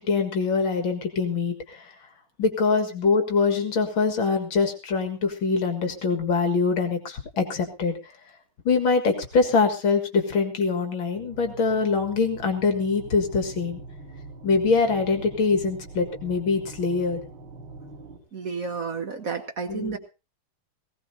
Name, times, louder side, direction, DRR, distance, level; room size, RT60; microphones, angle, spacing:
voice 1, 0.0-1.9 2.4-8.0 8.6-13.8 14.4-17.2 19.7-20.0, left 4 dB, 70° left, 5 dB, 2.6 m, -24 dB
sound 1, 11.1-18.2, right 3 dB, 80° right, 4.5 m, -43 dB
voice 2, 18.3-20.0, right 5 dB, 50° right, 7 dB, 1.4 m, -31 dB
18.5 x 17.0 x 2.8 m, 0.30 s
omnidirectional pair, 2.2 m